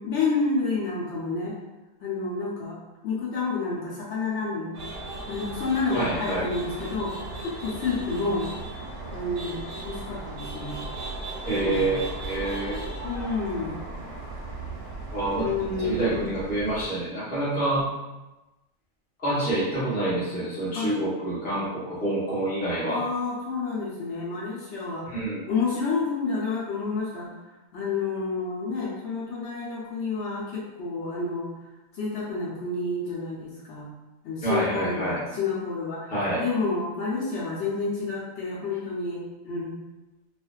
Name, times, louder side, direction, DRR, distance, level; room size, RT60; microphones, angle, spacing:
voice 1, 0.0-1.5 2.0-2.8 3.0-4.8 5.3-7.2 7.4-8.5 9.1-10.8 11.6-12.0 13.0-13.8 15.4-16.2 20.7-20.9 22.9-25.1 25.5-27.3 27.7-31.5 32.0-33.9 34.2-36.1 36.4-39.7, left 4 dB, 65° left, -6 dB, 0.9 m, -29 dB
sound 1, 4.7-16.9, right 2 dB, 70° right, 0.8 m, -37 dB
voice 2, 5.9-6.5 11.4-12.0 12.3-12.9 15.1-15.5 15.8-17.9 19.2-23.0 25.0-25.4 34.4-35.2 36.1-36.4, right 1 dB, 10° left, -9 dB, 0.5 m, -27 dB
2.5 x 2.2 x 2.2 m, 1.1 s
omnidirectional pair, 1.4 m